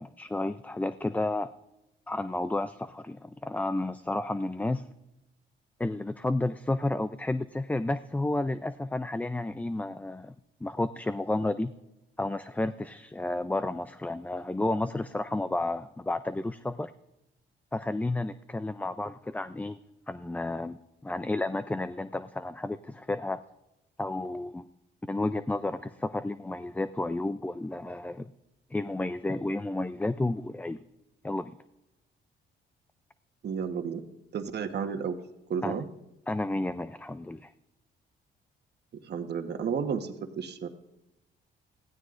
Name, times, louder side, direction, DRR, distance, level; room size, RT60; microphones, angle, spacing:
voice 1, 0.0-1.5 2.1-4.9 5.8-10.3 10.6-11.7 12.2-16.9 17.7-19.8 20.1-23.4 24.0-24.6 25.1-28.2 28.7-30.8 31.2-31.6 35.6-35.8 36.3-37.5, left 2 dB, 10° left, 12 dB, 0.4 m, -31 dB
voice 2, 33.4-34.0 34.3-35.1 35.5-35.8 38.9-40.7, right 6 dB, 55° right, 6 dB, 1.3 m, -32 dB
22.0 x 16.0 x 2.6 m, 0.94 s
cardioid pair, 90°, 20 cm